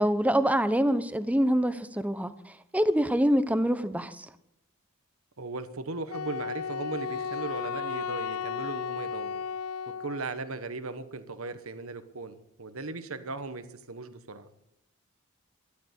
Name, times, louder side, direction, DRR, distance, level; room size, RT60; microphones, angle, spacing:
voice 1, 0.0-2.3 2.7-4.3, equal, 5° right, 0.8 m, -25 dB
voice 2, 5.4-9.4 10.0-14.5, right 3 dB, 75° right, 1.2 m, -37 dB
Wind instrument woodwind instrument, 6.1-10.4, left 6 dB, 80° left, 0.5 m, -34 dB
13.0 x 12.0 x 8.4 m
head